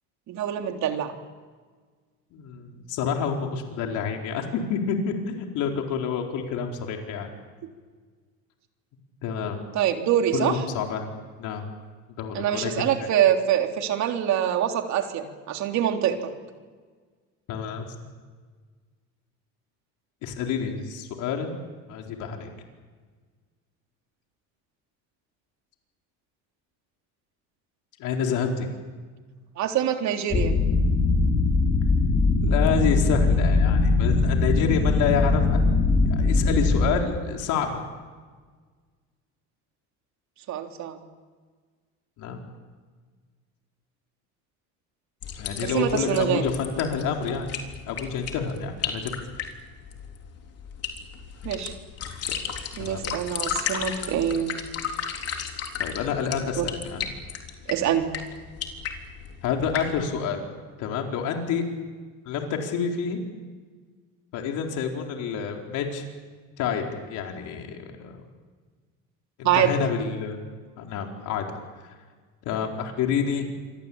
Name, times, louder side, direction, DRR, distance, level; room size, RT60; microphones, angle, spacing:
voice 1, 0.3-1.1 9.7-10.5 12.3-16.2 29.6-30.5 40.5-41.0 45.6-46.4 51.4-51.7 52.8-54.6 56.6-56.7 57.7-58.1 69.4-69.8, right 10 dB, 60° right, 4 dB, 3.5 m, -25 dB
voice 2, 2.3-7.3 9.2-9.6 10.3-11.1 11.4-11.7 12.2-13.1 17.5-17.8 20.2-21.5 21.9-22.5 28.0-28.7 32.4-35.6 36.1-37.8 42.2-42.4 45.4-47.5 47.9-49.1 52.3-52.4 52.8-53.0 55.8-57.1 59.4-60.4 60.8-61.6 62.3-63.2 64.3-66.0 66.6-68.2 69.4-70.4 70.8-71.4 72.5-73.5, left 6 dB, 65° left, 2 dB, 4.4 m, -28 dB
sound 1, 30.3-36.9, left 3 dB, 30° left, 4.8 m, -21 dB
sound 2, 45.2-60.0, left 7 dB, 50° left, 3.8 m, -35 dB
27.5 x 24.5 x 8.8 m, 1.5 s
cardioid pair, 125°, 32 cm